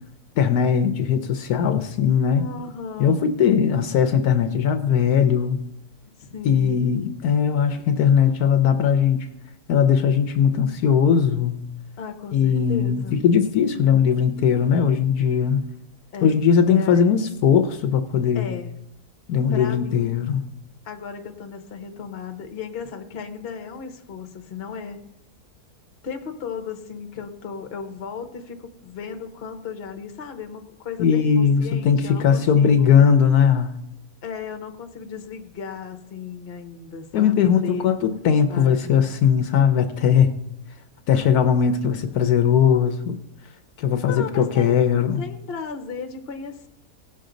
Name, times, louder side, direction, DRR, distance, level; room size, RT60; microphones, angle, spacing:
voice 1, 0.4-2.5 3.0-5.6 6.4-9.3 9.7-11.6 12.3-15.6 16.2-18.5 19.3-20.4 31.0-33.8 37.1-40.3 41.1-43.2 43.8-45.2, left 7 dB, 75° left, 9 dB, 1.2 m, -19 dB
voice 2, 2.3-3.2 6.2-6.9 12.0-13.2 16.1-16.4 16.7-17.1 18.3-18.7 19.5-20.2 20.8-25.0 26.0-33.0 34.2-38.2 38.5-39.1 44.0-44.8 45.2-46.7, left 6 dB, 45° left, 6 dB, 1.1 m, -35 dB
17.0 x 6.5 x 3.9 m, 0.81 s
omnidirectional pair, 1.7 m